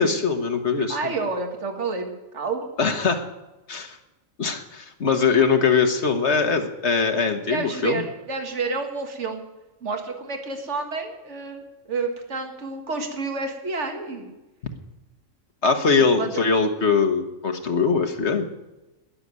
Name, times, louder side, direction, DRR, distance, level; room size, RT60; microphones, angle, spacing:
voice 1, 0.0-1.1 2.8-3.2 3.7-4.0 4.4-8.0 15.6-18.5, left 5 dB, 60° left, 6 dB, 1.6 m, -22 dB
voice 2, 0.9-2.7 7.5-9.4 9.8-14.3 16.2-16.3, right 4 dB, 65° right, 4 dB, 2.2 m, -29 dB
20.5 x 7.0 x 9.4 m, 1.0 s
omnidirectional pair, 1.3 m